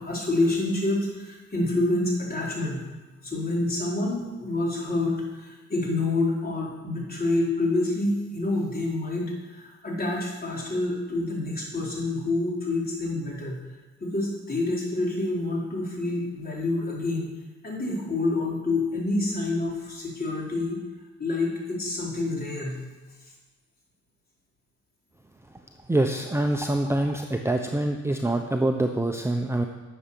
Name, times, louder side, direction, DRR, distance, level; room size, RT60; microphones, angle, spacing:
voice 1, 0.0-2.8 3.2-13.6 14.0-17.3 17.6-20.8 21.2-22.8, left 2 dB, 30° left, -3 dB, 4.1 m, -27 dB
voice 2, 25.9-29.7, right 1 dB, 10° right, 4 dB, 0.7 m, -25 dB
11.0 x 7.2 x 6.9 m, 1.2 s
cardioid pair, 90°, 30 cm